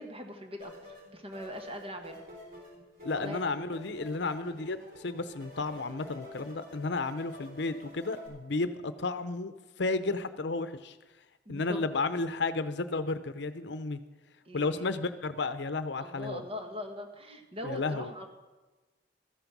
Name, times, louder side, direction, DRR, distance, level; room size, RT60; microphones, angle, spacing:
voice 1, 0.0-2.2 3.1-3.6 11.4-11.8 14.4-14.9 16.0-18.3, left 1 dB, 30° right, 4 dB, 1.4 m, -42 dB
sound 1, 0.6-8.3, left 2 dB, 55° right, 4.0 m, -49 dB
voice 2, 3.0-9.5 9.8-11.0 11.5-14.0 14.5-16.4 17.6-18.1, left 3 dB, 70° left, 11 dB, 0.7 m, -32 dB
14.0 x 9.1 x 6.1 m, 1.2 s
head